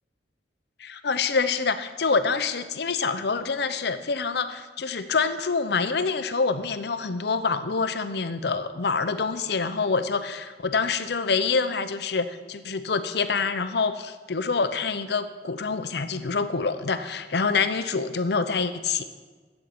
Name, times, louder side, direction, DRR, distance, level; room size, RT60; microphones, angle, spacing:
voice 1, 0.8-19.0, left 4 dB, 65° left, 10 dB, 0.7 m, -26 dB
8.3 x 8.0 x 9.0 m, 1.4 s
head